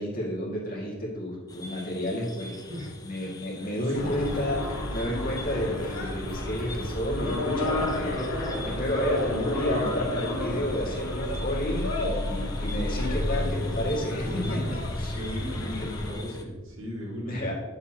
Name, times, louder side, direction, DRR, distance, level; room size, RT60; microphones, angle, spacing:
voice 1, 0.0-2.5 3.0-14.6 15.0-15.1 15.8-16.3 17.3-17.5, equal, 45° left, -4 dB, 2.1 m, -31 dB
sound 1, 1.5-16.4, left 2 dB, 20° left, 0.5 m, -44 dB
sound 2, 3.9-16.1, left 1 dB, 75° left, 1.5 m, -31 dB
voice 2, 14.2-14.8 15.1-17.4, left 1 dB, 65° right, -3 dB, 2.1 m, -36 dB
9.7 x 7.1 x 2.9 m, 1.3 s
head